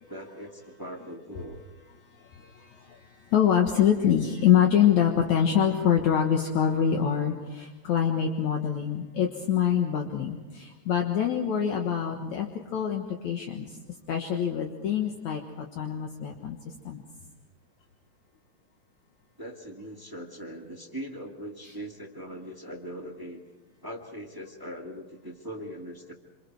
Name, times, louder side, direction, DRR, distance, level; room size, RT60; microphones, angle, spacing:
voice 1, 0.1-1.6 19.4-23.4 23.8-26.1, equal, 10° right, 1 dB, 1.3 m, -40 dB
voice 2, 2.2-13.8 14.1-16.6 16.8-17.0 21.6-21.7, left 9 dB, 65° left, 2 dB, 2.6 m, -25 dB
27.5 x 27.0 x 4.7 m, 1.2 s
omnidirectional pair, 3.7 m